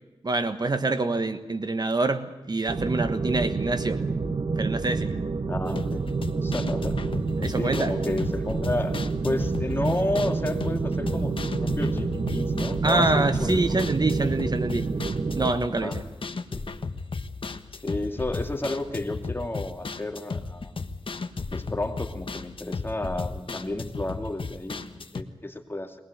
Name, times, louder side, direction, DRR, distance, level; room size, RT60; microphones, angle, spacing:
voice 1, 0.2-4.0 4.6-5.1 7.4-7.9 12.8-14.9 15.3-16.0, right 3 dB, 45° right, 9 dB, 1.3 m, -26 dB
sound 1, 2.7-15.5, right 4 dB, 65° right, 1.2 m, -28 dB
voice 2, 5.4-6.1 6.4-7.0 7.6-9.0 9.2-13.5 13.9-14.0 15.8-16.0 16.5-16.7 17.8-20.7 21.5-26.0, left 1 dB, 25° left, 4 dB, 2.5 m, -32 dB
sound 2, 5.7-25.2, left 4 dB, 65° left, 1.3 m, -35 dB
22.5 x 19.5 x 8.1 m, 1.1 s
wide cardioid pair, 105°, 10 cm